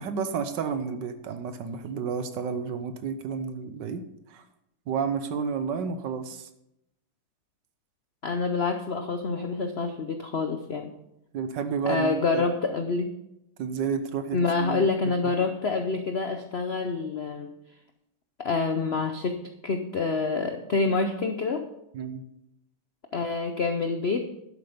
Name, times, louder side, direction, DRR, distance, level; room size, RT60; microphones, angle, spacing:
voice 1, 0.0-4.0 4.3-4.4 4.9-6.5 11.3-12.4 13.6-14.9 21.9-22.2, right 6 dB, 65° right, 10 dB, 1.4 m, -31 dB
voice 2, 8.2-10.9 11.9-13.1 14.3-17.5 18.4-21.7 23.1-24.2, left 4 dB, 90° left, 6 dB, 0.5 m, -27 dB
11.5 x 7.8 x 5.1 m, 0.85 s
omnidirectional pair, 2.2 m